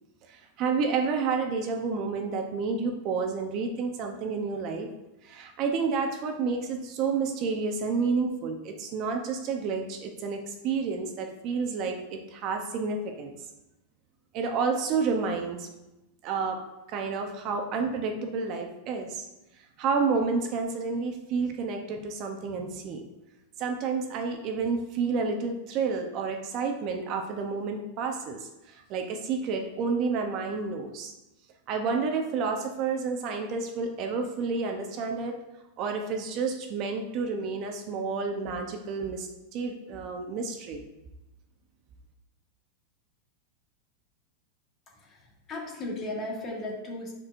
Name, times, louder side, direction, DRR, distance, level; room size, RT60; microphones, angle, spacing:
voice 1, 0.2-4.9 5.2-13.3 14.3-15.7 16.2-19.3 19.6-23.1 23.6-31.1 31.7-35.4 35.8-40.8, right 4 dB, 35° right, 4 dB, 0.7 m, -30 dB
voice 2, 44.9-47.1, left 1 dB, 25° left, -1 dB, 1.4 m, -36 dB
10.5 x 4.5 x 2.6 m, 0.96 s
supercardioid pair, 155°, 0 cm